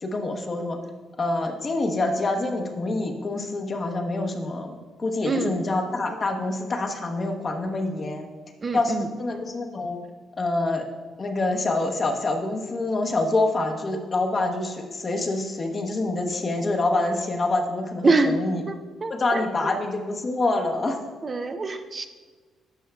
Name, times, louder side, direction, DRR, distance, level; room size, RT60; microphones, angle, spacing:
voice 1, 0.0-0.8 1.2-8.3 8.7-10.0 10.4-10.8 11.2-18.6 19.1-21.0, left 2 dB, 35° left, 3 dB, 0.9 m, -26 dB
voice 2, 8.6-9.1 18.0-18.4 18.7-18.8 19.0-19.7 21.2-22.1, right 3 dB, 35° right, 7 dB, 0.5 m, -25 dB
11.5 x 5.3 x 2.3 m, 1.4 s
cardioid pair, 90°, 0 cm